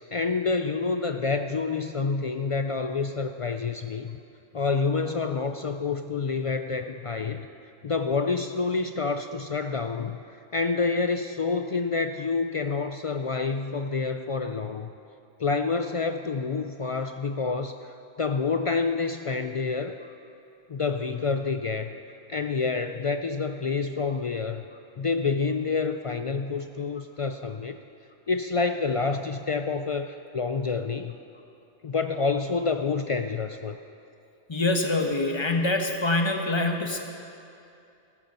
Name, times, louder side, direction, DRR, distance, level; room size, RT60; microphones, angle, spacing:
voice 1, 0.1-4.2 4.5-7.5 7.8-14.9 15.4-17.7 18.2-20.0 20.7-22.0 22.3-24.6 25.0-27.8 28.3-31.2 31.8-33.8, left 4 dB, 55° left, 7 dB, 0.4 m, -28 dB
voice 2, 34.5-37.0, left 2 dB, 25° left, 3 dB, 1.1 m, -25 dB
14.5 x 13.0 x 5.4 m, 2.7 s
omnidirectional pair, 1.1 m